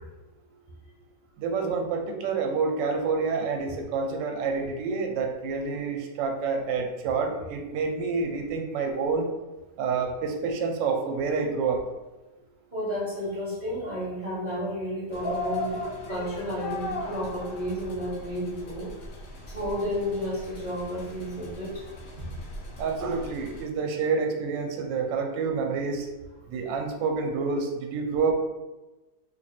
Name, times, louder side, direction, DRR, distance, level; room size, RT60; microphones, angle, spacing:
voice 1, 1.4-9.3 9.8-11.8 22.8-26.1 26.5-28.3, right 4 dB, 80° right, 3 dB, 1.3 m, -28 dB
voice 2, 12.7-18.9 19.5-21.8, equal, 40° right, -7 dB, 0.7 m, -32 dB
sound 1, 15.1-23.7, left 2 dB, 60° left, 0.9 m, -38 dB
3.0 x 2.4 x 4.1 m, 1.1 s
omnidirectional pair, 2.0 m